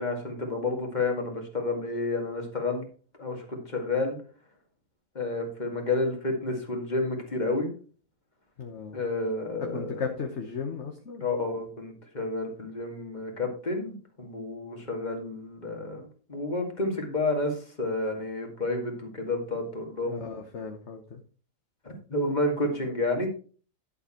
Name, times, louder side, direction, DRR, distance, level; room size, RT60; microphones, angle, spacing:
voice 1, 0.0-2.8 3.2-4.2 5.1-7.7 8.9-10.0 11.2-20.2 21.8-23.3, left 2 dB, 30° left, 2 dB, 2.3 m, -30 dB
voice 2, 8.6-9.0 9.6-11.3 20.1-21.2, left 5 dB, 55° left, 3 dB, 1.3 m, -36 dB
11.0 x 7.1 x 4.4 m, 0.39 s
omnidirectional pair, 1.5 m